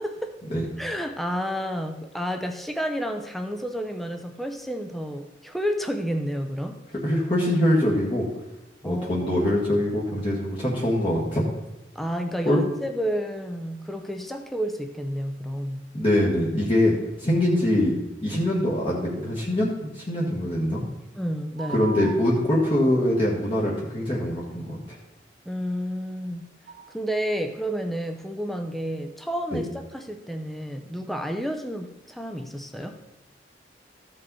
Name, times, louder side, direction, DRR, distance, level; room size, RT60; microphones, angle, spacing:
voice 1, 0.0-0.4 0.8-6.8 8.8-9.5 11.9-15.8 21.2-21.9 25.5-26.5 26.9-33.0, equal, ahead, 6 dB, 0.5 m, -30 dB
voice 2, 7.0-8.2 8.8-11.4 12.4-12.6 15.9-16.9 17.2-17.9 18.2-20.8 21.7-25.0 29.5-29.6, left 1 dB, 30° left, -5 dB, 1.5 m, -23 dB
sound 1, 21.6-23.0 26.7-26.9, right 4 dB, 75° right, 1.0 m, -37 dB
13.5 x 5.3 x 4.1 m, 1.0 s
head